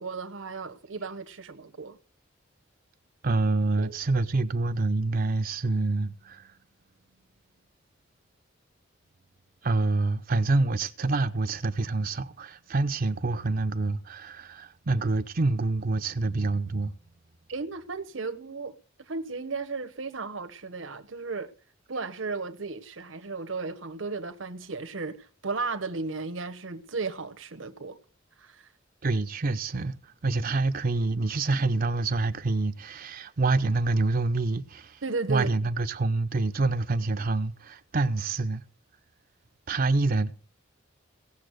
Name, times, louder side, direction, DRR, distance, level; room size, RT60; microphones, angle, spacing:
voice 1, 0.0-2.0 3.8-4.0 17.5-18.7 19.0-21.5 21.9-28.0 28.4-28.7 35.0-35.5, right 4 dB, 80° right, 1.1 m, -35 dB
voice 2, 3.2-6.6 9.6-16.9 29.0-35.0 35.3-38.6 39.7-40.3, right 3 dB, 45° right, 0.6 m, -27 dB
17.5 x 7.1 x 6.4 m
head